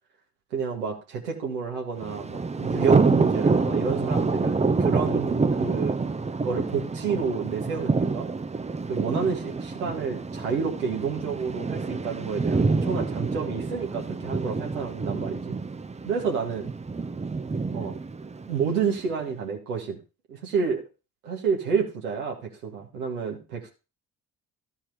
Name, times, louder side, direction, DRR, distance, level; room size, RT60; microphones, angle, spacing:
voice 1, 0.5-6.0 6.4-8.3 8.9-15.6 16.1-16.7 17.7-18.0 18.5-20.0 20.3-20.8 21.2-23.7, right 5 dB, 85° right, 0 dB, 1.9 m, -29 dB
Thunder, 2.0-19.0, right 4 dB, 15° right, 0.7 m, -27 dB
13.5 x 4.6 x 4.7 m, 0.30 s
hypercardioid pair, 45°, 44 cm